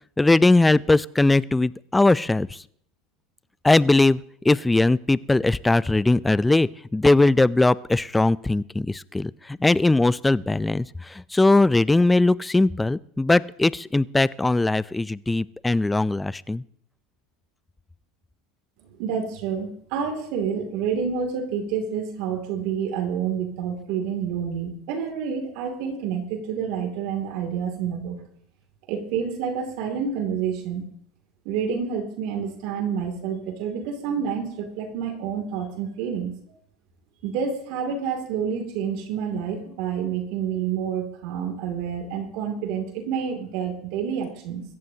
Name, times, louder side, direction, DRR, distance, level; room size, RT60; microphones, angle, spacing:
voice 1, 0.2-2.6 3.6-16.6, left 2 dB, 10° left, 20 dB, 0.5 m, -20 dB
voice 2, 18.8-28.2 28.9-30.8 31.4-36.3 37.2-44.6, right 7 dB, 65° right, 4 dB, 2.7 m, -28 dB
24.5 x 14.5 x 2.9 m, 0.67 s
hypercardioid pair, 90°, 0 cm